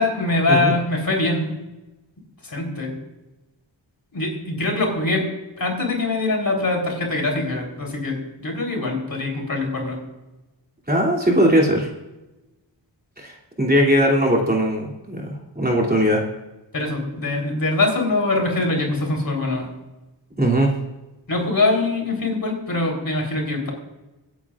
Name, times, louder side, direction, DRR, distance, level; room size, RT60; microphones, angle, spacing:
voice 1, 0.0-1.6 2.4-2.9 4.1-5.3 5.6-10.0 16.7-19.7 21.3-23.7, left 2 dB, 50° left, 1 dB, 3.6 m, -23 dB
voice 2, 10.9-11.9 13.2-15.2 15.5-16.2 20.4-20.7, equal, 20° right, -2 dB, 2.9 m, -19 dB
24.5 x 9.4 x 2.5 m, 1.0 s
wide cardioid pair, 70°, 46 cm